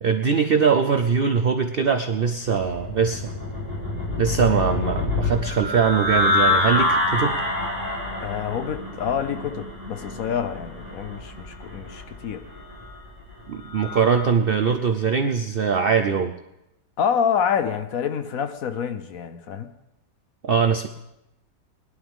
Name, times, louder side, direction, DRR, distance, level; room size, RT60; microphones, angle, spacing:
voice 1, 0.0-3.3 4.2-7.4 13.5-16.3 20.4-20.9, right 6 dB, 90° right, 6 dB, 0.5 m, -22 dB
sound 1, 2.4-14.3, left 2 dB, 25° left, 4.1 m, -27 dB
voice 2, 8.2-12.4 17.0-19.7, left 7 dB, 60° left, 10 dB, 1.1 m, -27 dB
21.0 x 11.5 x 3.6 m, 0.90 s
omnidirectional pair, 1.9 m